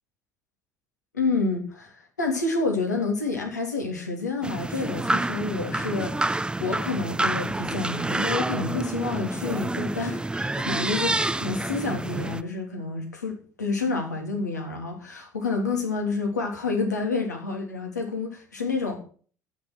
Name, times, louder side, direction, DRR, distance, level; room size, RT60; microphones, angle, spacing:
voice 1, 1.1-19.0, left 3 dB, 85° left, 1 dB, 3.1 m, -29 dB
sound 1, 4.4-12.4, right 2 dB, 10° right, 0.8 m, -28 dB
11.5 x 9.1 x 6.2 m, 0.42 s
figure-of-eight pair, 60°, 9 cm